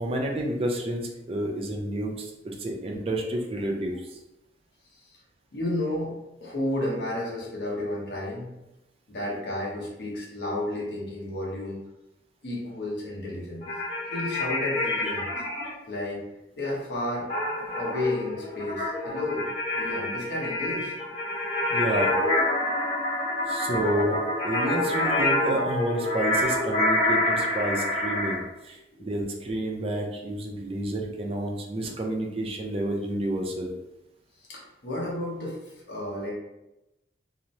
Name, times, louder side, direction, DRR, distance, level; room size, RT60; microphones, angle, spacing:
voice 1, 0.0-4.1 21.7-22.1 23.5-33.7, right 1 dB, 35° right, 0 dB, 0.4 m, -30 dB
voice 2, 5.5-6.1 6.4-8.5 9.1-11.8 12.4-13.7 14.0-15.3 15.9-16.2 16.6-17.3 17.8-21.0 22.6-23.0 23.2-23.5 28.9-29.1 34.4-36.3, left 1 dB, 70° left, -4 dB, 0.9 m, -32 dB
sound 1, 13.6-15.7 17.3-28.4, left 1 dB, 30° left, 1.0 m, -27 dB
2.9 x 2.0 x 2.6 m, 0.93 s
head